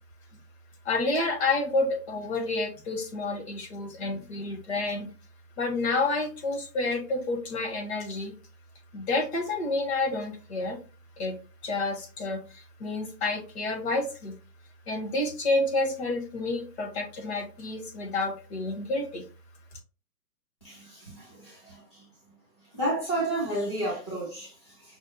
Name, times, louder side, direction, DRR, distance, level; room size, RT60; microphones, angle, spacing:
voice 1, 0.8-5.1 5.6-8.3 8.9-10.8 11.2-11.4 11.6-14.4 14.9-19.2, left 2 dB, 40° left, 1.1 m, -29 dB
voice 2, 20.6-22.1 22.6-25.0, right 1 dB, 20° left, 0.4 m, -32 dB
5.4 x 2.1 x 2.7 m
hypercardioid pair, 150°, 49 cm